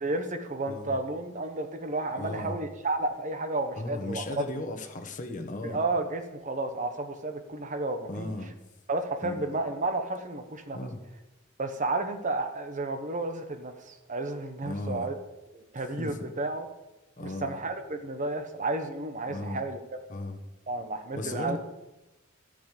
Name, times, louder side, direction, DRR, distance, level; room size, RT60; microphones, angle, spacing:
voice 1, 0.0-4.4 5.6-8.3 8.9-10.8 11.6-15.2 15.5-16.6 17.2-19.8 20.7-21.6, right 2 dB, 35° right, 7 dB, 1.0 m, -32 dB
voice 2, 0.7-1.0 2.2-2.6 3.8-5.8 8.1-8.6 9.2-9.6 10.7-11.0 14.6-15.1 16.0-16.2 17.2-17.6 19.3-19.6 20.1-20.4 21.1-21.6, left 2 dB, 35° left, 5 dB, 1.1 m, -36 dB
14.0 x 5.1 x 8.4 m, 1.0 s
head